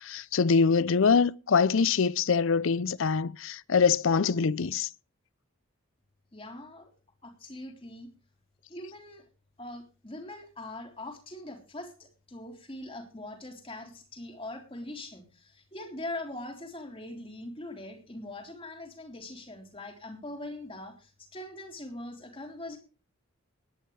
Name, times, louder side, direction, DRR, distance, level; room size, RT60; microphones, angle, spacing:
voice 1, 0.0-4.9, left 5 dB, 65° left, 0.5 m, -24 dB
voice 2, 6.3-6.9 7.2-8.1 8.7-9.2 9.6-22.8, left 1 dB, 25° left, 3.6 m, -42 dB
20.0 x 10.0 x 3.3 m
head